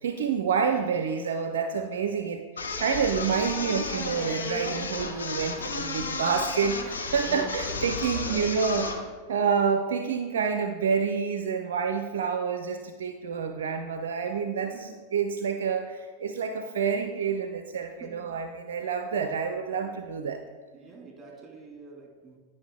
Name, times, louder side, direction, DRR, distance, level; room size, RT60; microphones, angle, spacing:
voice 1, 0.0-2.4 2.8-8.9 9.3-20.4, right 6 dB, 60° right, 7 dB, 0.4 m, -28 dB
sound 1, 2.6-9.0, left 3 dB, 70° left, 0.9 m, -33 dB
voice 2, 7.3-9.0 18.0-18.4 20.7-22.4, right 3 dB, 20° right, 0 dB, 2.1 m, -45 dB
10.0 x 5.3 x 3.3 m, 1.5 s
figure-of-eight pair, 90°, 0 cm